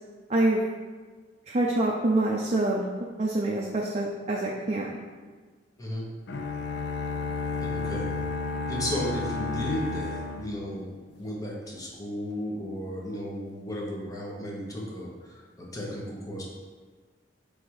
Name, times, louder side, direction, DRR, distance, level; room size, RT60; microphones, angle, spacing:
voice 1, 0.3-0.6 1.5-2.8 3.2-5.0, right 2 dB, 35° right, -2 dB, 0.5 m, -26 dB
sound 1, 6.3-11.3, left 4 dB, 65° left, 0.5 m, -32 dB
voice 2, 7.6-8.1 8.7-16.4, equal, 20° left, -4 dB, 1.2 m, -34 dB
5.7 x 3.5 x 4.7 m, 1.4 s
head